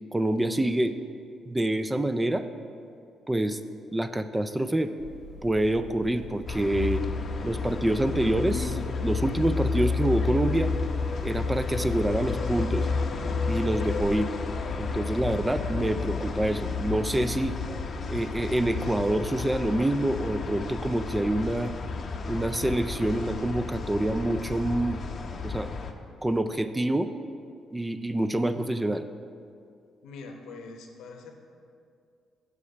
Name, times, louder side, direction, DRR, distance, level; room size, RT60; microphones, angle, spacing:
voice 1, 0.1-0.9 1.5-2.4 3.3-3.6 3.9-4.9 5.4-7.0 7.4-10.7 11.2-12.9 13.5-14.3 14.8-17.6 18.1-21.7 22.3-25.0 25.4-25.7 26.2-27.1 27.7-29.0, right 1 dB, 15° right, 10 dB, 0.4 m, -26 dB
sound 1, 5.0-19.0, equal, 75° right, 1.2 m, -44 dB
sound 2, 6.5-25.9, left 4 dB, 50° left, 0.7 m, -31 dB
voice 2, 30.0-31.3, left 3 dB, 85° left, 4 dB, 0.9 m, -43 dB
8.3 x 5.4 x 5.7 m, 2.4 s
cardioid pair, 90°, 0 cm